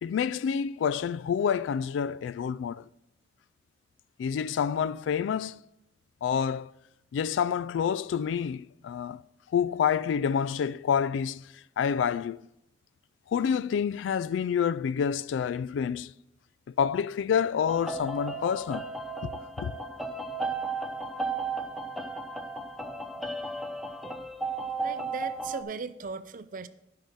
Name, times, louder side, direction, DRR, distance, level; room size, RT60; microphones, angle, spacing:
voice 1, 0.0-2.8 4.2-5.6 6.2-6.7 7.1-9.2 9.5-11.4 11.8-12.4 13.3-16.1 16.8-18.9 19.6-19.7, left 7 dB, 85° left, 0.3 m, -28 dB
sound 1, 17.7-25.6, right 3 dB, ahead, 0.6 m, -34 dB
voice 2, 24.8-26.7, right 4 dB, 45° right, 0.5 m, -38 dB
10.5 x 5.8 x 5.4 m
head